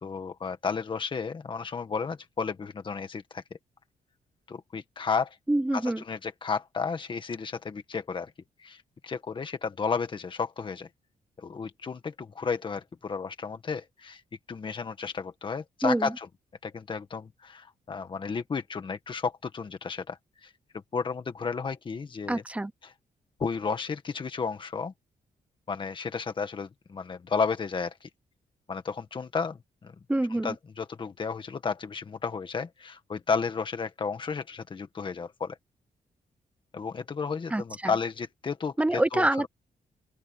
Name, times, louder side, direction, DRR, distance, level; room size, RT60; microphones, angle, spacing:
voice 1, 0.0-3.4 4.5-5.4 6.1-8.3 8.6-10.9 11.4-14.2 14.5-16.3 16.6-20.5 20.9-22.4 23.4-24.9 25.7-28.1 28.7-29.9 30.4-35.6 36.7-39.3, left 5 dB, 35° left, 1.7 m, -32 dB
voice 2, 5.5-6.0 15.8-16.1 22.3-22.7 30.1-30.6 37.5-37.9 38.8-39.5, right 1 dB, 10° right, 0.8 m, -26 dB
open air
cardioid pair, 125°, 14 cm